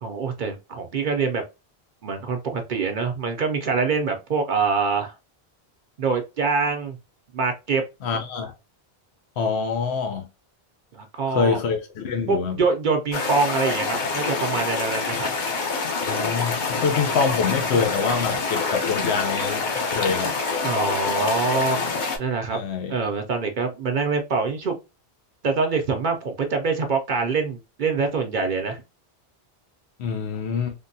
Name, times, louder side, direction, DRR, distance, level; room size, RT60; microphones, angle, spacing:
voice 1, 0.0-1.4 2.0-5.1 6.0-7.0 7.3-7.8 10.9-11.6 12.3-15.3 20.6-21.9 22.2-22.6 22.9-24.7 25.4-28.8, right 4 dB, 55° right, 0.6 m, -25 dB
voice 2, 8.0-8.5 9.4-10.3 11.3-12.6 16.1-20.3 22.5-22.9 30.0-30.7, left 5 dB, 80° left, 0.9 m, -25 dB
Water Canyon Stream, 13.1-22.2, left 4 dB, 50° left, 0.7 m, -26 dB
3.4 x 2.2 x 2.6 m
omnidirectional pair, 1.1 m